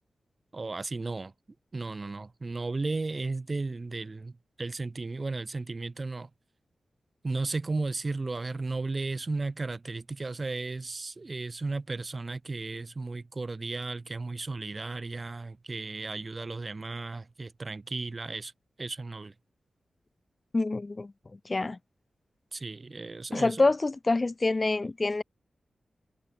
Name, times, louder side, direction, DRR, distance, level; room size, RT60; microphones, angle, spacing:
voice 1, 0.5-1.3 1.7-6.3 7.2-18.5 18.8-19.3 22.5-23.6, right 3 dB, 40° right, 1.5 m, -34 dB
voice 2, 20.5-21.1 21.5-21.8 23.3-25.2, left 3 dB, 35° left, 0.4 m, -26 dB
cardioid pair, 65°, 0 cm